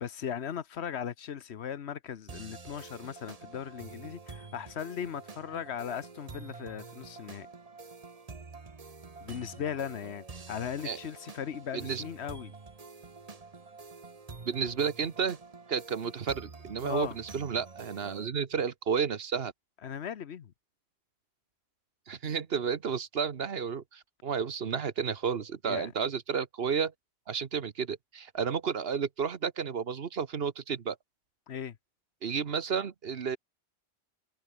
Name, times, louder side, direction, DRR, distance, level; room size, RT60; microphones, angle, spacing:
voice 1, 0.0-7.5 9.2-12.5 16.8-17.2 19.8-20.5 25.6-25.9 31.5-31.8, left 8 dB, 75° left, 1.2 m, -38 dB
sound 1, 2.3-18.3, right 4 dB, 35° right, 1.3 m, -47 dB
voice 2, 11.7-12.0 14.4-15.4 15.7-19.5 22.1-26.9 27.3-31.0 32.2-33.4, right 6 dB, 65° right, 1.3 m, -32 dB
omnidirectional pair, 1.1 m